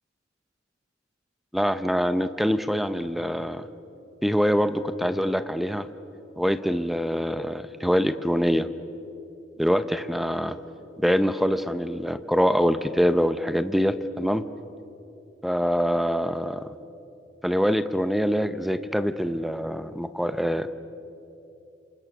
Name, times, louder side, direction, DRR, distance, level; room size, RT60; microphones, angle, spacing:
voice 1, 1.5-3.7 4.2-5.9 6.4-8.7 9.6-10.6 11.0-14.5 15.4-16.7 17.4-20.7, equal, ahead, 11 dB, 0.7 m, -24 dB
29.0 x 27.0 x 6.1 m, 2.8 s
head